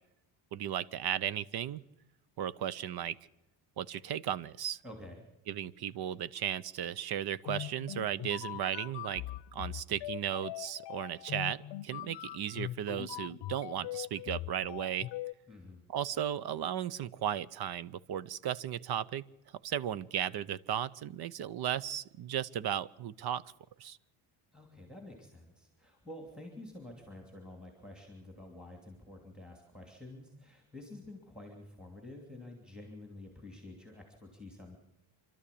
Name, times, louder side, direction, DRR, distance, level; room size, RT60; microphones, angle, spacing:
voice 1, 0.5-1.8 2.4-3.2 3.8-4.8 5.5-9.2 9.5-15.1 15.9-19.3 19.6-23.4 23.8-24.0, right 10 dB, 50° right, 20 dB, 0.7 m, -35 dB
voice 2, 4.8-5.3 15.5-15.8 24.5-34.8, left 1 dB, ahead, 2 dB, 2.9 m, -49 dB
sound 1, 7.4-15.3, left 14 dB, 60° left, 0.7 m, -41 dB
26.5 x 12.5 x 8.5 m, 0.92 s
cardioid pair, 140°, 49 cm